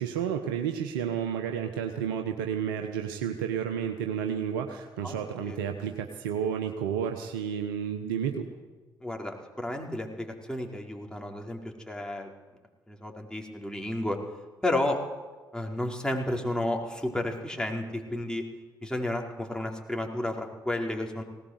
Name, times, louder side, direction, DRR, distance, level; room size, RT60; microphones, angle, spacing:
voice 1, 0.0-8.5, right 8 dB, 80° right, 5 dB, 1.2 m, -31 dB
voice 2, 5.0-5.6 9.0-12.3 12.9-14.2 14.6-15.0 15.5-18.4 18.8-21.2, left 1 dB, 5° left, 1 dB, 4.7 m, -32 dB
19.5 x 18.0 x 8.1 m, 1.3 s
figure-of-eight pair, 45°, 11 cm